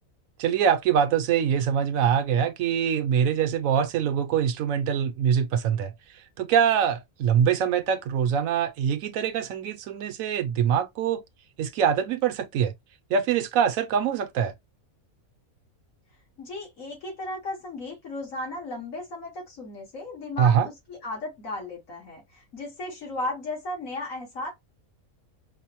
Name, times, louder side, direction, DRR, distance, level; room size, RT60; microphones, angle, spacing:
voice 1, 0.4-5.9 6.4-11.2 11.6-12.7 13.1-14.5 20.4-20.7, right 8 dB, 75° right, 1.0 m, -24 dB
voice 2, 16.4-24.5, left 2 dB, 70° left, 2.0 m, -35 dB
4.8 x 2.1 x 2.9 m
omnidirectional pair, 1.5 m